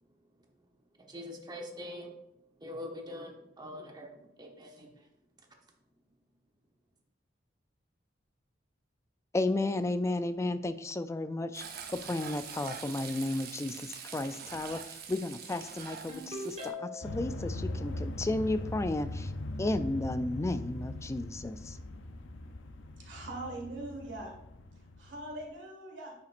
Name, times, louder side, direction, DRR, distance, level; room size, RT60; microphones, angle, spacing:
voice 1, 1.1-2.2 2.6-4.1 4.4-4.9, left 1 dB, 25° right, 2 dB, 1.1 m, -43 dB
voice 2, 9.3-11.6 11.9-19.3 19.6-21.8, left 2 dB, 15° left, 11 dB, 0.3 m, -33 dB
Frying (food), 11.5-16.7, right 6 dB, 55° right, 0.8 m, -44 dB
Ringtone, 16.1-17.3, left 2 dB, 40° right, 2.0 m, -40 dB
sound 1, 17.0-25.5, left 1 dB, 85° left, 0.6 m, -40 dB
voice 3, 23.0-24.3 24.8-26.1, right 2 dB, 80° right, 0 dB, 1.9 m, -42 dB
10.0 x 5.7 x 2.5 m, 0.83 s
head